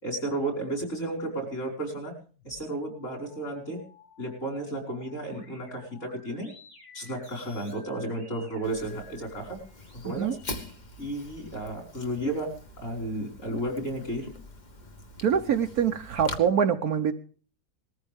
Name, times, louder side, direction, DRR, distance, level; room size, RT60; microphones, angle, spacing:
voice 1, 0.0-2.1 2.4-3.8 4.2-6.5 6.9-9.6 9.9-10.4 11.0-12.5 12.8-14.3, right 1 dB, 45° left, 2 dB, 5.5 m, -33 dB
sound 1, 2.3-10.7, left 3 dB, 90° left, 7.8 m, -54 dB
Fire, 8.6-16.4, left 2 dB, 25° left, 1.4 m, -43 dB
voice 2, 10.0-10.3 15.2-17.1, right 7 dB, 60° right, 7 dB, 1.3 m, -24 dB
20.0 x 14.5 x 3.5 m, 0.40 s
omnidirectional pair, 1.9 m